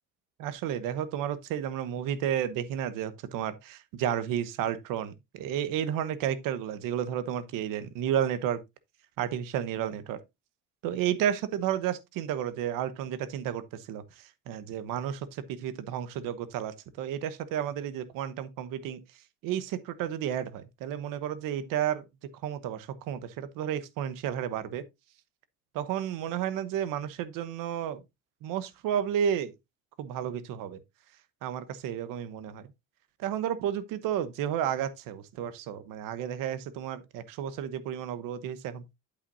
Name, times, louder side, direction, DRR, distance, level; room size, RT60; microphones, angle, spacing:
voice 1, 0.4-8.6 9.2-10.2 10.8-19.0 19.4-22.0 22.4-24.8 25.7-28.0 28.4-29.5 30.0-30.8 31.4-32.7 33.2-38.8, right 10 dB, 80° right, 1.1 m, -32 dB
8.5 x 8.3 x 2.6 m
cardioid pair, 160°, 32 cm